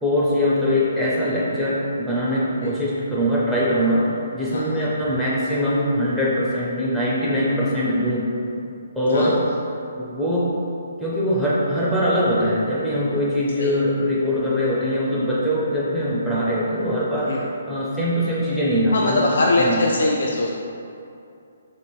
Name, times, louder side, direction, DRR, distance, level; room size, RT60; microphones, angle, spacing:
voice 1, 0.0-8.3 8.9-9.4 10.0-10.5 11.0-19.8, equal, ahead, -8 dB, 0.4 m, -22 dB
voice 2, 4.5-4.8 9.1-9.3 13.6-13.7 17.3-17.4 18.9-20.5, left 2 dB, 65° left, -2 dB, 0.3 m, -22 dB
3.0 x 2.9 x 4.3 m, 2.6 s
hypercardioid pair, 165°, 0 cm